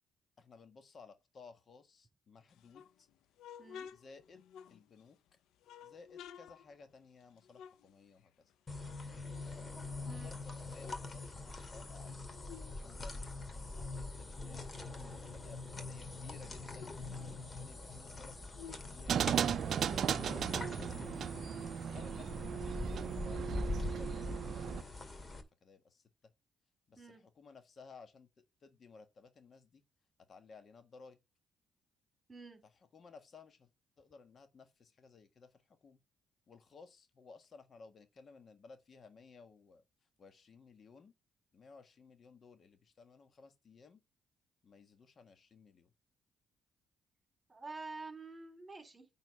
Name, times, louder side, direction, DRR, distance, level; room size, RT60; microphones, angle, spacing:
voice 1, 0.4-3.1 3.9-5.2 5.8-8.5 9.4-9.7 10.0-12.2 12.7-17.0 17.5-18.5 18.8-19.6 20.9-26.3 26.9-28.3 28.6-29.8 30.3-31.2 32.6-33.7 34.0-36.0 36.5-39.8 40.2-41.1 41.5-44.0 44.6-45.9, left 4 dB, 50° left, 1.6 m, -58 dB
sound 1, 2.5-5.2 5.6-8.5 8.8-10.1 10.5-12.8 13.1-15.6 16.0-16.1 16.3-19.8, left 8 dB, 80° left, 0.6 m, -55 dB
sound 2, 8.7-25.4, left 2 dB, 30° left, 2.2 m, -43 dB
sound 3, 19.1-24.8, right 8 dB, 65° right, 0.4 m, -36 dB
voice 2, 32.3-32.6 47.5-49.1, right 3 dB, 25° right, 3.7 m, -48 dB
9.2 x 4.0 x 5.6 m
supercardioid pair, 65°, 0 cm